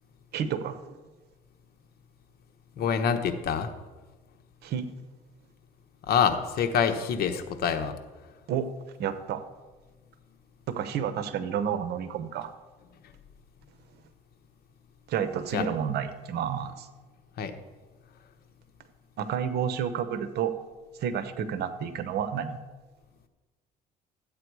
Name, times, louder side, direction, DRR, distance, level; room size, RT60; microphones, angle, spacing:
voice 1, 0.3-1.0 4.6-4.9 8.5-8.7 9.0-9.4 10.7-12.5 15.1-16.9 19.2-20.5 21.0-22.6, right 8 dB, 75° right, 11 dB, 1.0 m, -30 dB
voice 2, 2.8-3.7 6.0-8.0 15.5-15.7 17.4-17.5, left 7 dB, 65° left, 7 dB, 1.1 m, -26 dB
13.0 x 8.7 x 4.7 m, 1.3 s
cardioid pair, 110°, 17 cm